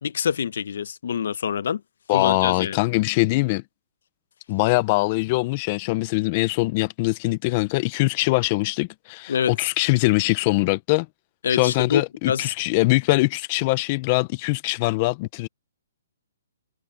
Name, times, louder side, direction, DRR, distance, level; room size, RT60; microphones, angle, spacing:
voice 1, 0.0-1.8 2.1-2.8 9.3-9.5 11.4-12.5, left 7 dB, 60° left, 0.7 m, -26 dB
voice 2, 2.1-3.6 4.5-11.1 11.5-15.5, left 22 dB, 25° left, 0.5 m, -22 dB
hypercardioid pair, 165°, 0 cm